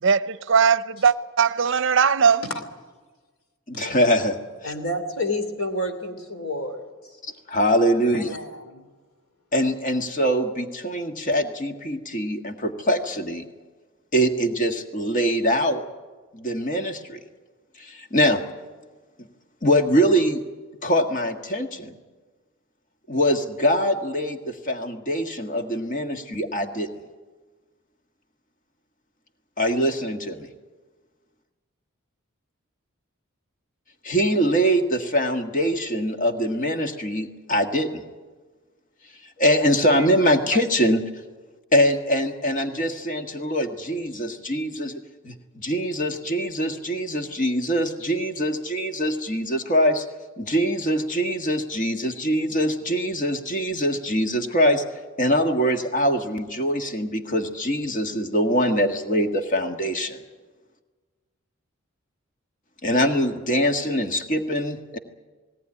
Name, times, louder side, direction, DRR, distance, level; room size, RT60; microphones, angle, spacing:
voice 1, 0.5-2.4 40.5-40.6, right 6 dB, 60° right, 0.6 m, -19 dB
voice 2, 3.7-4.4 4.6-4.7 7.5-8.4 9.5-13.5 14.1-15.8 16.3-17.2 17.8-18.4 19.2-19.3 19.6-20.4 20.8-22.0 23.1-26.9 29.6-30.5 34.0-38.0 39.4-41.0 41.7-50.0 50.4-54.8 55.2-60.2 62.8-65.0, equal, 40° left, 1.7 m, -23 dB
voice 3, 4.6-6.9 8.2-8.8, left 1 dB, 85° left, 3.0 m, -29 dB
19.5 x 18.0 x 9.8 m
head